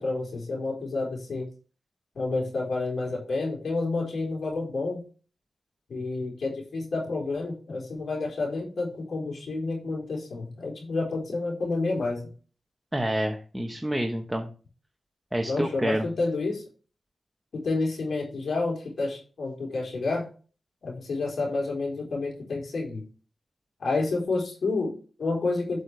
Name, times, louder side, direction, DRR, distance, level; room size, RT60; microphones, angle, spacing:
voice 1, 0.0-1.5 2.1-5.0 5.9-12.3 15.5-16.6 17.5-20.3 20.8-23.0 23.8-25.8, left 3 dB, 75° left, -2 dB, 4.2 m, -29 dB
voice 2, 12.9-14.5 15.3-16.1, right 1 dB, 5° right, 3 dB, 1.1 m, -28 dB
8.0 x 6.5 x 3.4 m, 0.37 s
cardioid pair, 65°, 0 cm